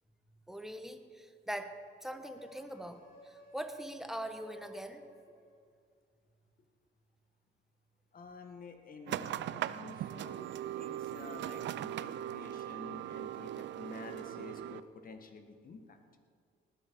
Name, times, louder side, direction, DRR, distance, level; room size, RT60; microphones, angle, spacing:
voice 1, 0.5-5.1, equal, ahead, 7 dB, 1.1 m, -42 dB
sound 1, 2.3-5.6, right 1 dB, 75° left, 3.3 m, -55 dB
voice 2, 8.1-16.0, left 4 dB, 45° left, 6 dB, 1.5 m, -50 dB
sound 2, 9.1-14.8, right 12 dB, 65° right, 0.4 m, -39 dB
19.0 x 9.5 x 4.6 m, 2.1 s
cardioid pair, 90°, 20 cm